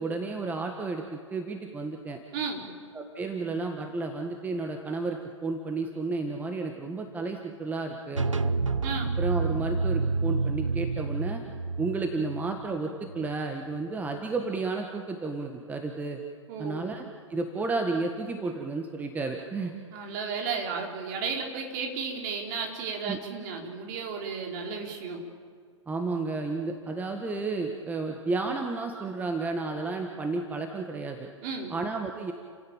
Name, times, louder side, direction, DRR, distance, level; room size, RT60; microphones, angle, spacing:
voice 1, 0.0-2.2 2.9-8.5 9.2-11.4 11.8-16.2 16.6-19.7 23.0-23.2 25.9-31.3 31.7-32.3, right 3 dB, 10° right, 3 dB, 1.7 m, -32 dB
voice 2, 2.3-2.7 8.8-9.2 16.5-16.9 19.9-25.2 31.4-31.7, right 5 dB, 40° right, 1 dB, 4.7 m, -34 dB
sound 1, 8.1-13.8, right 3 dB, 80° right, 1.0 m, -29 dB
30.0 x 17.0 x 9.0 m, 2.1 s
figure-of-eight pair, 110°, 16 cm